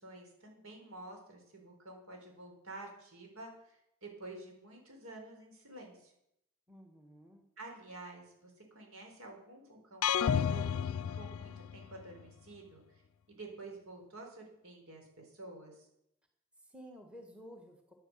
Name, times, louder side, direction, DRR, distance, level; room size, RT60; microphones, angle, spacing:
voice 1, 0.0-6.1 7.6-10.8 11.1-12.8 13.3-15.9, right 2 dB, 75° right, 2 dB, 4.3 m, -50 dB
voice 2, 6.7-7.4 16.6-17.9, equal, 5° right, 3 dB, 1.5 m, -53 dB
sound 1, 10.0-12.0, left 8 dB, 70° left, 0.4 m, -32 dB
10.5 x 10.0 x 7.9 m, 0.79 s
head